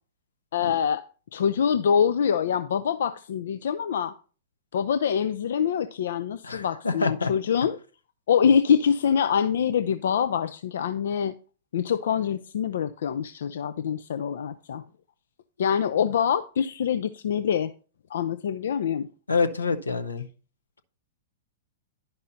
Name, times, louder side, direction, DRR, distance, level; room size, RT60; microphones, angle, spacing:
voice 1, 0.5-1.1 1.3-4.1 4.7-7.8 8.3-11.3 11.7-14.8 15.6-17.7 18.1-19.1, left 7 dB, 65° left, 0.4 m, -25 dB
voice 2, 6.4-7.3 19.3-20.3, left 4 dB, 85° left, 0.7 m, -26 dB
10.0 x 5.4 x 3.9 m
figure-of-eight pair, 105°, 0 cm